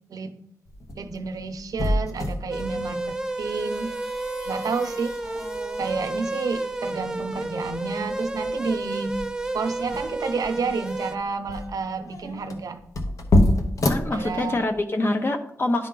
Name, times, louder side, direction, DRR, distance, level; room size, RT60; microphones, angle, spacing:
sound 1, 0.7-14.8, left 1 dB, 65° left, 0.9 m, -29 dB
voice 1, 1.0-3.9 4.5-5.2 5.8-9.2 9.5-12.8 14.1-14.6, right 4 dB, 80° right, 8 dB, 0.6 m, -30 dB
sound 2, 2.5-11.2, right 2 dB, 10° right, 0.5 m, -31 dB
voice 2, 13.8-15.9, left 2 dB, 40° left, 6 dB, 0.7 m, -25 dB
10.5 x 3.7 x 3.8 m, 0.70 s
wide cardioid pair, 145°, 6 cm